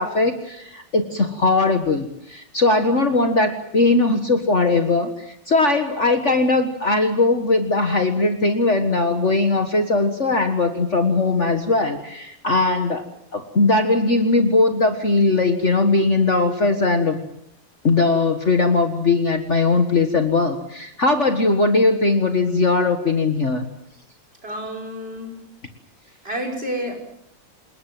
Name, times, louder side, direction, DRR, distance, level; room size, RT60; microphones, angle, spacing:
voice 1, 0.0-13.1 13.3-17.2 17.8-23.7, left 3 dB, 40° left, 6 dB, 1.9 m, -19 dB
voice 2, 24.4-25.4 26.2-26.9, equal, 30° right, 4 dB, 6.1 m, -29 dB
29.0 x 19.0 x 7.7 m, 0.74 s
omnidirectional pair, 2.0 m